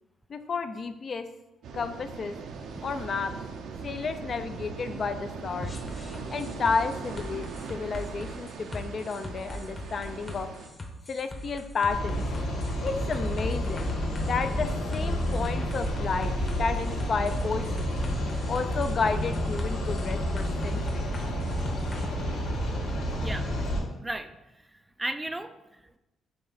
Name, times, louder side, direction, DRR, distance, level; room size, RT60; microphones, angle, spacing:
voice 1, 0.3-1.3 1.7-2.4 2.8-3.4 3.8-5.7 6.3-10.5 11.1-12.3 12.8-17.9 18.5-21.1, left 4 dB, 45° left, 9 dB, 0.5 m, -31 dB
sound 1, 1.6-10.7, right 5 dB, 75° right, 0.7 m, -40 dB
sound 2, 5.6-22.0, left 1 dB, 30° left, 1.0 m, -40 dB
sound 3, 11.9-23.8, equal, 75° left, 1.8 m, -30 dB
voice 2, 23.2-23.5 24.0-26.0, right 1 dB, 15° right, 10 dB, 0.4 m, -36 dB
5.3 x 3.4 x 5.6 m, 0.99 s
cardioid pair, 90°, 0 cm